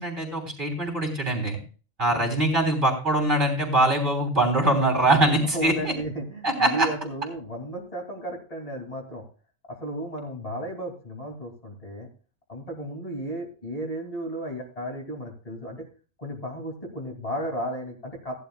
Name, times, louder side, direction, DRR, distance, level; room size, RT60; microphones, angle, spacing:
voice 1, 0.0-1.6 2.0-5.9 6.4-6.9, right 1 dB, 40° right, 1 dB, 3.7 m, -23 dB
voice 2, 2.1-2.4 5.4-9.2 9.7-12.1 12.5-15.9 16.2-18.4, right 1 dB, 30° left, 0 dB, 2.8 m, -34 dB
17.5 x 11.5 x 2.3 m, 0.36 s
omnidirectional pair, 1.4 m